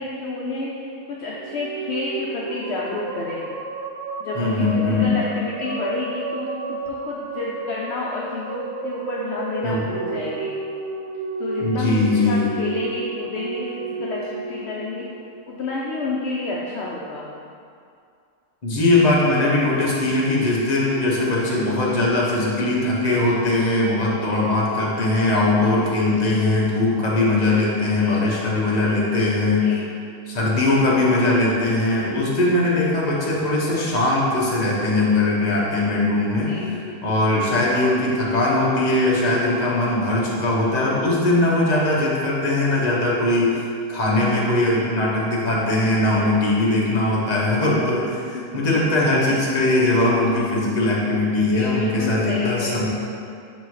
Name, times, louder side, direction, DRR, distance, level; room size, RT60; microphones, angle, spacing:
voice 1, 0.0-3.5 4.2-10.5 11.4-15.1 15.5-17.3 27.8-28.3 29.4-29.9 36.4-37.0 44.3-44.6 46.1-46.5 47.3-47.4 48.3-48.4 51.4-52.9, left 2 dB, 65° left, -5 dB, 0.9 m, -30 dB
sound 1, 1.3-15.7, right 4 dB, 80° right, 1.0 m, -32 dB
voice 2, 4.3-5.0 9.6-9.8 11.6-12.5 18.6-29.6 30.3-36.5 37.0-43.6 43.9-52.9, left 2 dB, 35° left, -5 dB, 1.1 m, -20 dB
5.4 x 4.1 x 4.7 m, 2.4 s
omnidirectional pair, 1.3 m